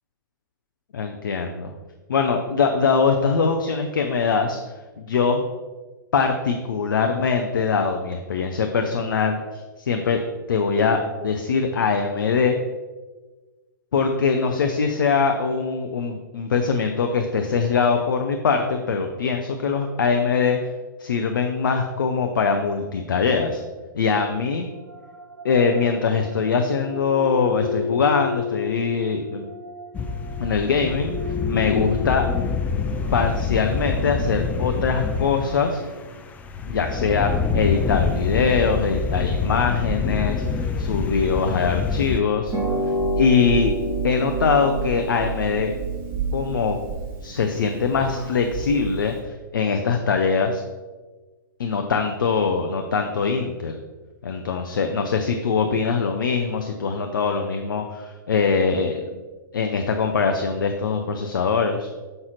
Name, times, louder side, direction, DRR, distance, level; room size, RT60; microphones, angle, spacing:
voice 1, 0.9-1.7 2.1-4.6 5.0-5.4 6.1-9.4 9.8-10.2 10.5-12.6 13.9-20.6 21.0-23.6 23.9-24.7 25.4-29.4 30.4-31.1 31.5-32.2 33.1-35.8 36.7-42.5 43.2-43.7 44.0-45.7 46.3-46.8 47.2-50.6 51.6-53.8 54.2-59.1 59.5-61.9, left 5 dB, 65° left, 5 dB, 0.5 m, -22 dB
sound 1, 24.7-36.2, left 5 dB, 85° right, 0.5 m, -34 dB
sound 2, 29.9-42.2, left 5 dB, 15° left, 0.3 m, -26 dB
Harp, 42.5-49.2, right 2 dB, 20° right, 1.3 m, -28 dB
6.5 x 5.5 x 3.0 m, 1.3 s
figure-of-eight pair, 115°, 12 cm